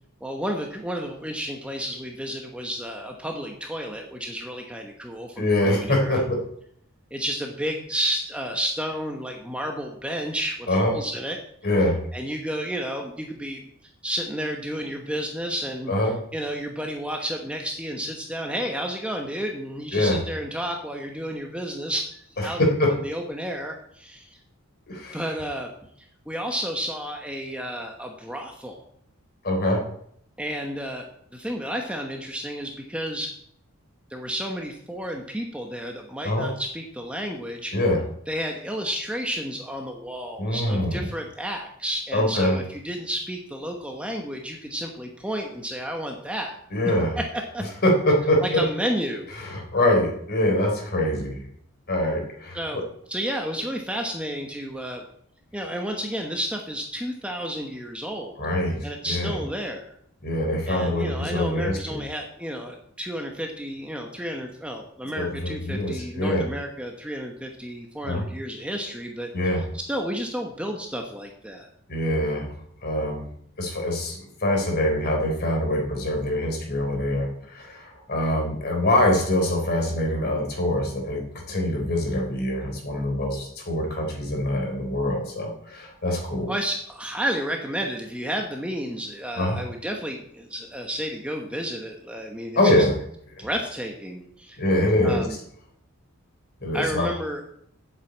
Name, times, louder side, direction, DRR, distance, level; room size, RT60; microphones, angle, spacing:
voice 1, 0.2-6.2 7.1-11.4 12.1-13.6 14.0-15.9 16.3-22.1 22.4-22.7 23.0-24.4 25.1-25.7 26.0-28.8 30.4-33.3 34.1-37.7 38.3-46.6 47.2-47.6 48.4-49.3 52.5-52.8 53.1-55.0 55.5-58.4 58.8-59.9 60.7-69.3 69.9-71.7 86.5-92.9 93.4-94.6 95.0-95.4 96.7-97.4, equal, 5° right, 2 dB, 1.1 m, -31 dB
voice 2, 5.4-6.4 10.7-10.9 11.6-12.0 15.9-16.2 19.9-20.2 22.4-22.9 24.9-25.2 29.4-29.8 36.2-36.5 37.7-38.0 40.4-41.1 42.1-42.6 46.7-47.2 47.8-48.6 49.4-51.4 51.9-52.8 58.4-59.4 60.2-62.0 65.2-66.4 68.0-68.3 69.3-69.6 71.9-72.5 72.8-73.3 73.6-86.5 89.4-89.6 92.5-92.9 93.4-93.5 94.6-95.3 96.6-97.1, left 1 dB, 45° left, 1 dB, 3.6 m, -24 dB
8.0 x 8.0 x 8.3 m, 0.69 s
head